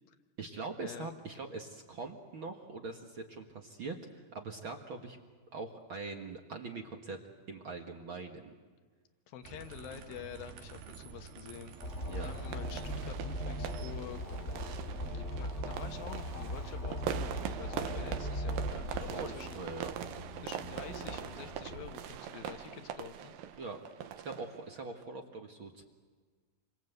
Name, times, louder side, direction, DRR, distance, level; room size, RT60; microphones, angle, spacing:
voice 1, 0.4-5.2 5.5-7.2 7.5-8.5 12.1-12.3 19.1-19.9 23.6-23.8 24.1-25.8, right 3 dB, 50° right, 3 dB, 1.6 m, -42 dB
voice 2, 9.3-11.8 12.2-14.4 15.0-19.6 20.4-23.3, left 10 dB, 75° left, 8 dB, 3.0 m, -48 dB
sound 1, 9.4-15.0, right 7 dB, 90° right, 3.7 m, -51 dB
sound 2, 11.8-21.9, equal, 25° left, 1.8 m, -39 dB
sound 3, 12.2-25.0, right 9 dB, 75° right, 2.7 m, -42 dB
28.5 x 24.5 x 8.1 m, 1.5 s
omnidirectional pair, 4.3 m